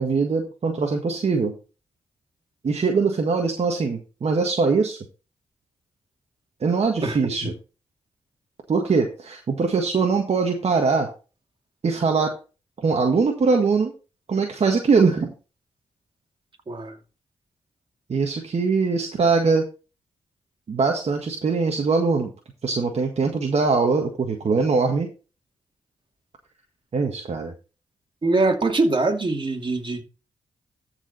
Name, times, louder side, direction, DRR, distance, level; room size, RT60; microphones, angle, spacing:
voice 1, 0.0-1.5 2.6-5.0 6.6-7.5 8.7-11.1 11.8-12.3 12.8-13.9 14.3-15.3 18.1-19.6 20.7-22.3 22.6-25.1 26.9-27.5, right 4 dB, 55° right, 1.7 m, -22 dB
voice 2, 28.2-30.0, right 2 dB, 40° right, 2.6 m, -22 dB
13.5 x 5.0 x 4.1 m
supercardioid pair, 40°, 13 cm